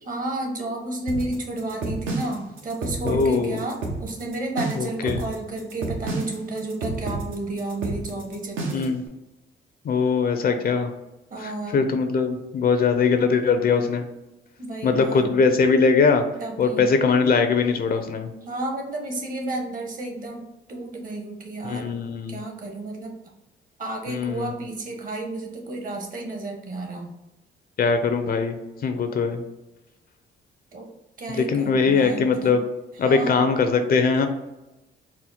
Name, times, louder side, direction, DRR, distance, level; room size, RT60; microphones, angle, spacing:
voice 1, 0.0-8.9 11.3-11.8 14.6-15.3 16.4-16.9 18.4-22.0 22.3-23.2 23.8-27.1 30.7-30.9 31.2-32.6 33.0-33.4, right 2 dB, 45° right, 2 dB, 1.1 m, -32 dB
sound 1, 1.1-9.0, right 2 dB, 80° right, 1.0 m, -30 dB
voice 2, 3.0-3.6 4.8-5.2 8.7-9.0 9.8-10.9 11.4-14.0 14.8-16.3 16.6-18.3 21.6-22.4 24.1-24.5 27.8-28.6 28.8-29.4 31.3-32.6 33.0-34.3, left 5 dB, 50° left, 7 dB, 0.5 m, -21 dB
4.3 x 2.1 x 4.1 m, 0.98 s
cardioid pair, 90°, 20 cm